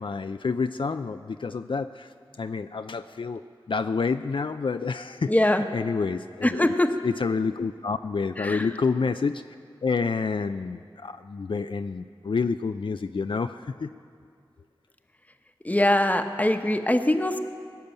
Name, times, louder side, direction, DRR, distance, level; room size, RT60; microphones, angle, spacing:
voice 1, 0.0-6.7 7.0-9.4 9.8-13.9, left 4 dB, 65° left, 9 dB, 0.4 m, -28 dB
voice 2, 5.3-5.7 6.4-6.9 8.4-8.7 15.6-17.4, left 1 dB, 15° left, 7 dB, 1.0 m, -22 dB
18.0 x 6.8 x 9.0 m, 2.2 s
wide cardioid pair, 40°, 9 cm